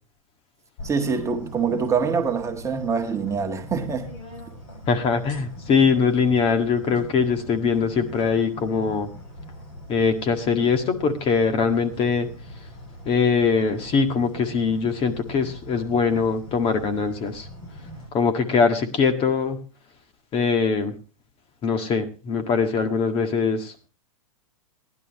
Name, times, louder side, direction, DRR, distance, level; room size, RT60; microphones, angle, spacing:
sound 1, 0.8-18.1, left 1 dB, 50° left, 7.3 m, -41 dB
voice 1, 0.8-4.1, right 5 dB, 15° right, 1.4 m, -25 dB
voice 2, 4.9-9.1 9.9-12.3 13.1-17.5 18.1-19.6 20.3-20.9 21.6-23.9, left 5 dB, 30° left, 1.8 m, -22 dB
17.5 x 11.0 x 3.0 m
hypercardioid pair, 120°, 18 cm